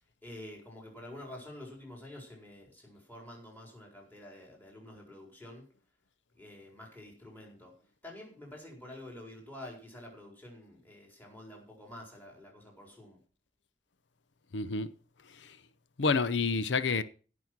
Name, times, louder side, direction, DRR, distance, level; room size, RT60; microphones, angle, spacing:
voice 1, 0.2-5.7 6.3-7.7 8.0-13.2, left 1 dB, 10° left, 4.5 m, -48 dB
voice 2, 14.5-14.9 15.3-15.6 16.0-17.0, left 4 dB, 80° left, 0.7 m, -29 dB
16.5 x 6.3 x 6.0 m
head